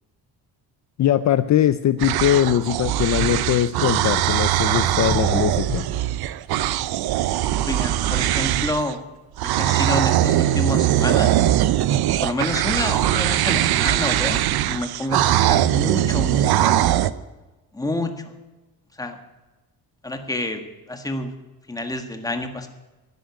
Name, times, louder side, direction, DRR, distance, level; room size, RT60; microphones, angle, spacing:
voice 1, 1.0-5.9, left 11 dB, 50° left, 12 dB, 0.5 m, -21 dB
sound 1, 2.0-8.9 9.4-17.1, right 13 dB, 85° right, 0.7 m, -21 dB
voice 2, 7.7-9.0 9.4-11.3 12.2-17.1 17.7-18.1 19.0-19.2 20.0-20.6 20.9-21.3 21.7-22.7, left 1 dB, 10° left, 6 dB, 1.6 m, -28 dB
13.0 x 10.0 x 9.6 m, 1.1 s
cardioid pair, 145°, 36 cm